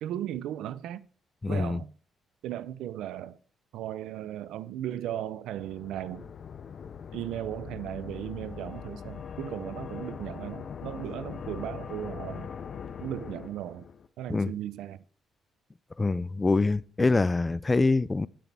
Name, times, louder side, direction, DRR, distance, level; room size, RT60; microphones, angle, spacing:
voice 1, 0.0-1.1 1.5-1.9 2.4-3.4 3.7-6.3 7.1-12.5 13.0-13.9 14.2-15.0, right 12 dB, 85° right, 0.6 m, -36 dB
voice 2, 1.4-1.8 14.3-14.5 16.0-18.3, left 3 dB, 20° left, 0.5 m, -25 dB
sound 1, 5.5-14.1, left 7 dB, 55° left, 0.9 m, -41 dB
18.0 x 6.1 x 3.4 m
cardioid pair, 90°, 0 cm